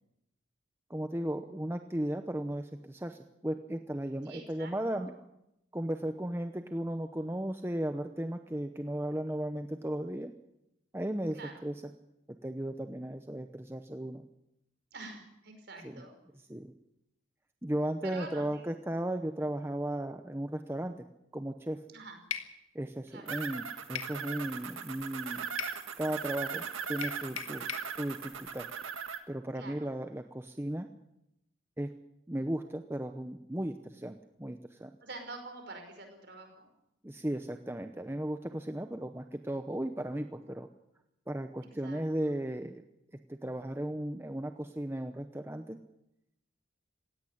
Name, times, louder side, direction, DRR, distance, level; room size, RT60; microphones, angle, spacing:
voice 1, 0.9-5.1 5.7-10.3 10.9-11.7 12.4-14.2 15.8-16.0 16.5-16.7 17.6-21.0 21.3-21.8 22.7-25.5 26.0-27.6 28.0-28.7 29.3-30.9 31.8-31.9 32.3-34.9 37.0-40.7 41.3-42.8 43.3-45.8, right 1 dB, 10° right, 7 dB, 0.8 m, -35 dB
voice 2, 4.2-5.2 11.3-11.6 14.9-16.1 18.0-18.7 21.9-22.2 23.1-23.3 29.5-29.9 35.0-36.7 41.8-42.3, right 2 dB, 55° right, 5 dB, 5.1 m, -46 dB
sound 1, 22.3-22.5 24.0-24.2 25.6-25.8 27.0-27.9, left 9 dB, 90° left, 1.9 m, -38 dB
sound 2, 23.3-29.2, right 6 dB, 80° right, 1.9 m, -39 dB
17.5 x 16.5 x 10.0 m, 0.84 s
head